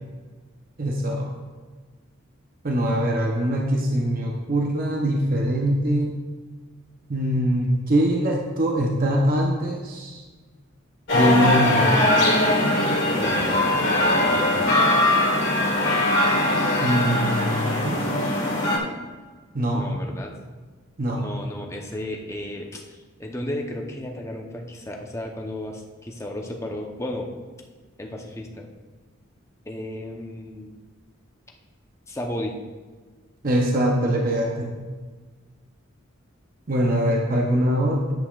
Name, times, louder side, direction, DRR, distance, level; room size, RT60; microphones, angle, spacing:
voice 1, 0.8-1.3 2.6-6.1 7.1-10.2 11.1-11.9 16.8-18.4 19.5-19.9 21.0-21.2 33.4-34.7 36.7-38.1, equal, 45° right, 0 dB, 0.8 m, -23 dB
sound 1, 11.1-18.8, left 1 dB, 60° left, 1.9 m, -21 dB
voice 2, 13.2-13.6 14.0-14.6 19.7-20.4 21.2-27.3 28.0-28.7 29.7-30.8 32.1-32.5, left 1 dB, 15° left, 1 dB, 0.8 m, -34 dB
10.5 x 8.2 x 2.4 m, 1.4 s
head